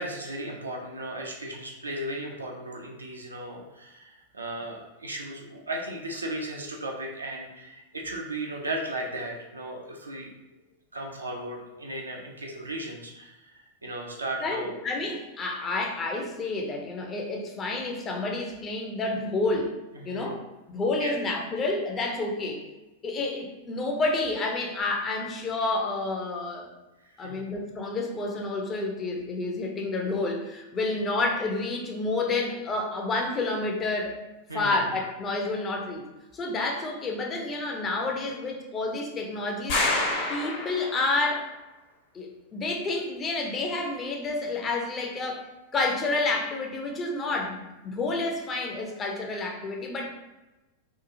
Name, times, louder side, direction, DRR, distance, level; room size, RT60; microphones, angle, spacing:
voice 1, 0.0-10.3 10.9-14.8 19.9-20.4 21.0-21.1 27.2-27.5 34.5-34.8, right 1 dB, 75° right, 0 dB, 0.4 m, -36 dB
voice 2, 14.4-22.6 23.0-26.7 27.2-34.2 34.5-36.0 36.3-39.8 40.3-41.5 42.1-45.4 45.7-50.1, left 2 dB, 25° left, 1 dB, 0.5 m, -29 dB
sound 1, 39.7-41.2, left 2 dB, 50° left, 0.8 m, -27 dB
2.8 x 2.3 x 2.5 m, 1.1 s
figure-of-eight pair, 90°, 0 cm